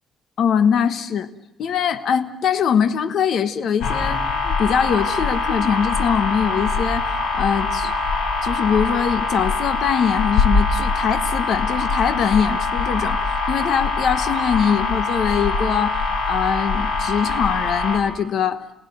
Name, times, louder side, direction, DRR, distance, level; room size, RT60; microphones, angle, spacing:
voice 1, 0.4-1.3 1.6-7.9 8.4-13.2 13.5-18.6, left 7 dB, 55° left, 10 dB, 1.3 m, -22 dB
sound 1, 3.8-18.0, left 3 dB, 75° left, 6.6 m, -23 dB
29.5 x 18.5 x 9.3 m, 0.95 s
cardioid pair, 145°, 0 cm